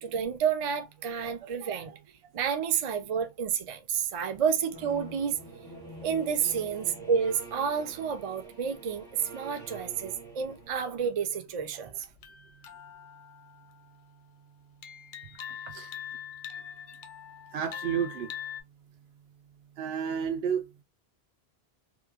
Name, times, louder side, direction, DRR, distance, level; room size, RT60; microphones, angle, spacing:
voice 1, 0.0-2.0 2.3-5.4 6.0-12.1, right 7 dB, 50° right, 0.4 m, -30 dB
sound 1, 4.7-10.7, right 3 dB, 25° right, 0.9 m, -45 dB
sound 2, 12.0-14.3 14.8-18.6, left 9 dB, 60° left, 0.6 m, -43 dB
voice 2, 17.5-18.3 19.8-20.8, right 7 dB, 75° right, 0.8 m, -31 dB
3.0 x 2.2 x 2.3 m
omnidirectional pair, 1.1 m